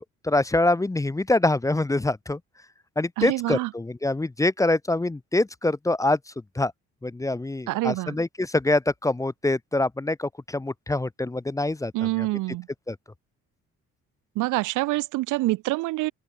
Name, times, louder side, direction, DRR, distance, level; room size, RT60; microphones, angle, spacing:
voice 1, 0.2-2.4 3.0-6.7 7.0-11.9 12.2-12.3 12.9-13.0, left 2 dB, 10° left, 0.6 m, -25 dB
voice 2, 3.2-3.7 7.7-8.2 11.9-12.7 14.4-16.1, right 20 dB, 90° right, 0.6 m, -26 dB
open air
cardioid pair, 90°, 30 cm